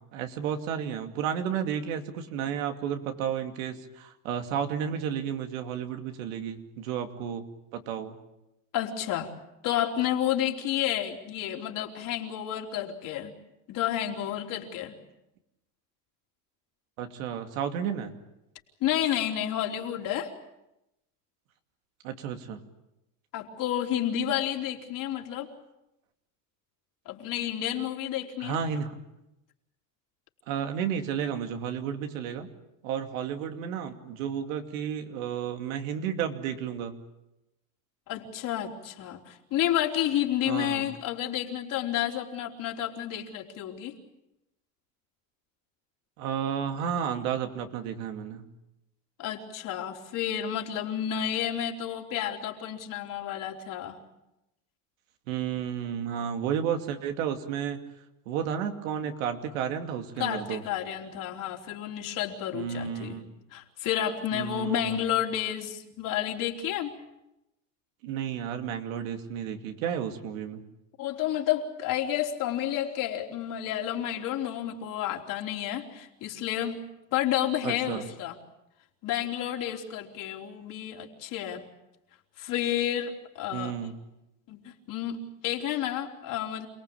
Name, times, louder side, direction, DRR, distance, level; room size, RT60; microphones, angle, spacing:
voice 1, 0.0-7.5 7.7-8.2 17.0-18.1 22.0-22.6 28.4-29.0 30.5-32.5 32.8-37.0 40.5-40.9 46.2-48.5 55.3-57.8 58.3-60.6 62.5-63.3 64.3-65.1 68.0-70.7 77.6-78.0 83.5-84.0, right 8 dB, 80° right, 6 dB, 2.7 m, -32 dB
voice 2, 8.7-9.3 9.6-13.3 13.7-15.0 18.8-20.3 23.3-25.5 27.1-28.6 38.1-44.0 49.2-54.0 60.2-63.2 63.5-66.9 71.0-76.8 77.1-78.4 79.0-81.7 82.4-83.7 84.5-86.7, left 11 dB, 55° left, 2 dB, 3.6 m, -30 dB
28.0 x 18.5 x 8.7 m, 0.91 s
supercardioid pair, 120°, 39 cm